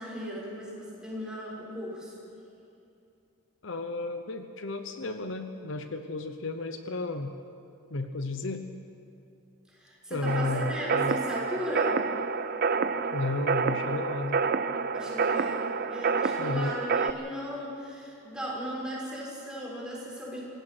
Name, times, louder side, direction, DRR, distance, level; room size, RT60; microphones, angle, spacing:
voice 1, 0.0-2.2 9.7-12.0 14.9-20.4, equal, 5° right, -6 dB, 6.0 m, -37 dB
voice 2, 3.6-7.3 7.9-8.6 10.1-11.2 13.1-14.4 16.4-16.7, left 2 dB, 60° left, 7 dB, 0.9 m, -33 dB
sound 1, 10.3-17.1, right 5 dB, 45° right, 0.5 m, -28 dB
25.5 x 17.5 x 6.1 m, 2.7 s
head